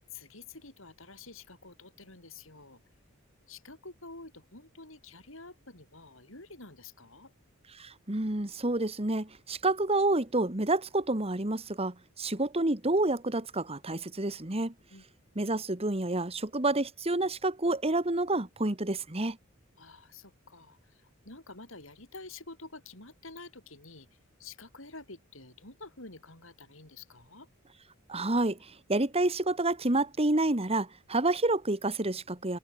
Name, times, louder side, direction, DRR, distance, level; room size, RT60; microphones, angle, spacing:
voice 1, 0.1-2.8 3.5-7.3 14.9-15.0 19.8-24.1 24.4-27.5, left 3 dB, 65° left, 7.7 m, -49 dB
voice 2, 7.8-14.7 15.4-19.4 28.1-28.6 28.9-32.6, right 2 dB, 30° right, 1.9 m, -29 dB
open air
head